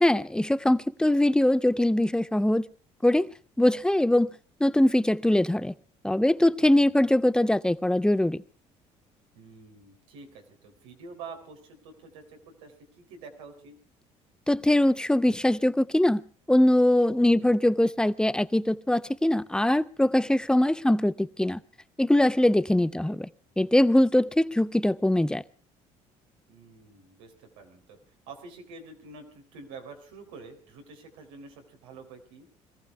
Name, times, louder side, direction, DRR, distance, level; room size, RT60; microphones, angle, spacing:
voice 1, 0.0-2.6 3.0-3.3 3.6-4.3 4.6-5.7 6.0-8.4 14.5-16.2 16.5-21.6 22.0-23.3 23.6-25.4, left 1 dB, 5° left, 0.7 m, -22 dB
voice 2, 9.3-13.8 17.2-17.6 23.0-23.2 26.5-32.5, right 4 dB, 85° right, 3.6 m, -47 dB
20.5 x 14.5 x 4.7 m
supercardioid pair, 70°, 15 cm